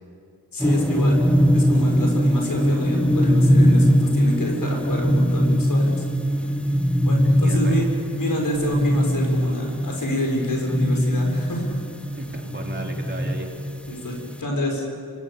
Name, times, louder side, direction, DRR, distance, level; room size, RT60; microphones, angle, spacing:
voice 1, 0.5-1.2 1.5-6.0 6.4-6.5 7.0-7.8 8.2-11.8 13.9-14.8, left 1 dB, 60° left, 1 dB, 6.6 m, -27 dB
sound 1, 0.6-14.4, equal, 5° left, 1.4 m, -21 dB
voice 2, 7.2-7.9 12.1-13.5, right 2 dB, 30° right, 0 dB, 3.6 m, -35 dB
25.5 x 24.0 x 7.0 m, 2.5 s
wide cardioid pair, 100°, 38 cm